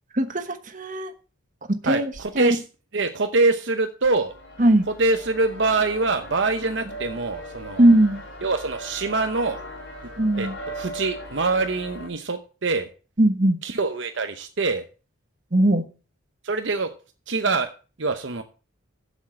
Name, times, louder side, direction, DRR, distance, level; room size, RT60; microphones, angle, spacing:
voice 1, 0.1-1.1 1.7-2.6 4.6-4.8 7.8-8.2 10.2-10.5 13.2-13.6 15.5-15.8, right 1 dB, 40° right, 8 dB, 1.1 m, -19 dB
voice 2, 1.8-2.6 2.9-4.3 4.9-7.9 8.4-9.6 10.4-12.9 13.6-14.8 16.4-16.9 17.3-17.7 18.0-18.4, right 3 dB, 55° right, 7 dB, 0.8 m, -24 dB
sound 1, 4.3-12.1, equal, 65° left, 5.0 m, -39 dB
7.4 x 7.3 x 7.4 m, 0.36 s
head